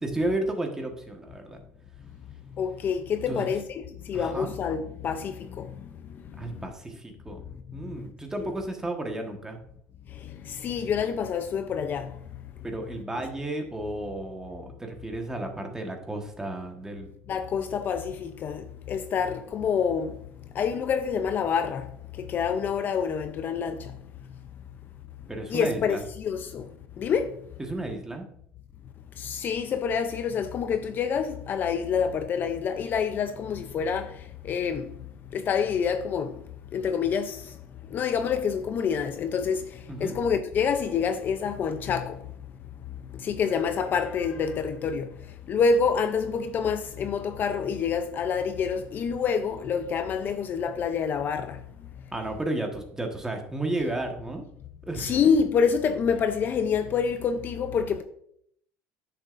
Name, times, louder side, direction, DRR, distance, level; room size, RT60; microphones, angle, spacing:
voice 1, 0.0-1.6 3.3-3.5 4.1-4.5 6.4-7.4 7.7-9.6 12.6-17.1 25.3-26.0 27.6-28.2 39.9-40.1 52.1-54.4 54.8-55.2, right 2 dB, 10° right, 1.3 m, -33 dB
voice 2, 2.6-5.7 8.4-8.5 10.2-12.1 13.2-13.3 17.3-20.1 20.5-21.9 22.2-23.9 25.5-26.7 27.0-27.4 29.2-34.1 34.4-34.9 35.3-36.4 36.7-37.5 37.9-42.2 43.1-45.1 45.5-51.6 55.0-58.0, left 6 dB, 40° left, 0.5 m, -27 dB
9.9 x 6.8 x 2.5 m
cardioid pair, 125°, 5 cm